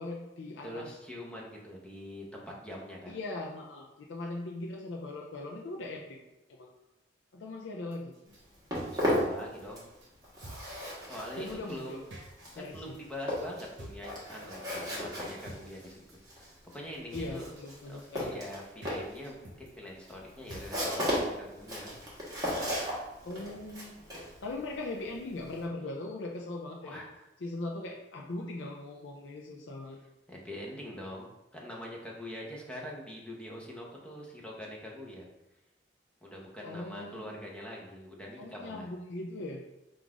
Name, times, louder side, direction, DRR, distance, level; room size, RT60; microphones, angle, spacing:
voice 1, 0.0-0.9 3.1-6.2 6.5-6.7 7.3-8.1 11.4-12.0 12.5-13.0 17.1-18.4 23.2-27.0 27.4-30.0 36.6-37.4 38.4-39.6, left 2 dB, 75° left, -1 dB, 0.5 m, -40 dB
voice 2, 0.6-3.2 8.9-9.9 10.9-12.0 12.5-16.0 16.3-17.5 17.9-21.9 26.8-27.1 30.3-35.3 36.2-38.9, left 1 dB, 5° left, -2 dB, 0.8 m, -44 dB
sound 1, 7.9-21.3, right 1 dB, 70° right, 0.8 m, -50 dB
Walk footsteps, 8.3-10.0 10.2-25.6, equal, 20° right, 1.3 m, -36 dB
3.8 x 2.5 x 4.6 m, 0.95 s
head